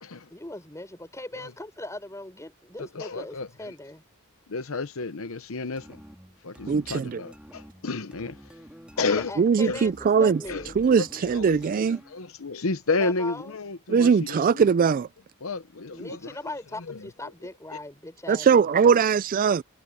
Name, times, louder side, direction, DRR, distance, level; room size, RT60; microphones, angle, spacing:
voice 1, 0.3-4.0 9.0-10.8 13.0-13.6 15.9-19.0, left 2 dB, 15° left, 6.6 m, -39 dB
voice 2, 2.8-3.7 4.5-6.0 6.4-8.5 9.0-9.3 9.6-9.8 10.5-10.6 10.9-14.7 15.4-16.4 16.8-17.1, left 3 dB, 70° left, 0.9 m, -31 dB
sound 1, 5.8-12.2, equal, 5° right, 1.9 m, -48 dB
voice 3, 6.7-7.2 9.4-10.4 10.8-12.0 13.9-15.1 18.3-19.6, right 6 dB, 40° right, 0.3 m, -21 dB
head